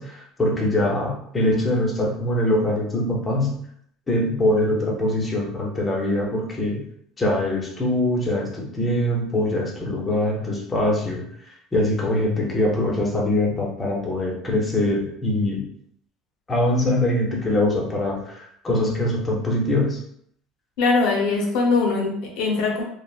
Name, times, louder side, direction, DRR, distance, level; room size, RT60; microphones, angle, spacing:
voice 1, 0.0-3.6 4.1-6.8 7.2-11.2 11.7-15.6 16.5-20.0, left 1 dB, 15° left, -2 dB, 0.6 m, -23 dB
voice 2, 20.8-22.8, left 3 dB, 75° left, 0 dB, 0.7 m, -21 dB
3.2 x 2.0 x 2.4 m, 0.69 s
cardioid pair, 160°, 0 cm